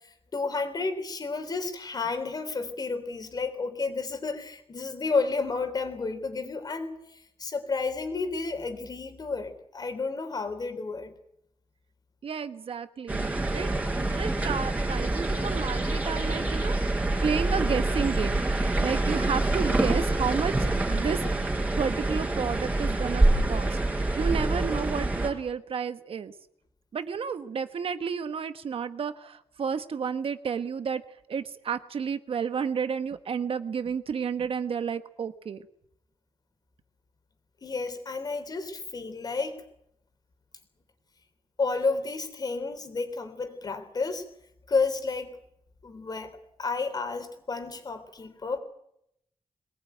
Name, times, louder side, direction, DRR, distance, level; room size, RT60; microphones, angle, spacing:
voice 1, 0.3-11.1 37.6-39.6 41.6-44.3 44.7-45.3 45.8-46.3 46.6-48.6, left 4 dB, 40° left, 8 dB, 3.6 m, -31 dB
voice 2, 12.2-16.8 17.2-21.2 21.8-23.8 24.2-26.3 26.9-31.0 31.3-35.6, right 6 dB, 65° right, 11 dB, 1.2 m, -31 dB
sound 1, 13.1-25.3, right 2 dB, 15° right, 4.6 m, -26 dB
23.0 x 19.0 x 9.2 m, 0.76 s
wide cardioid pair, 170°, 10 cm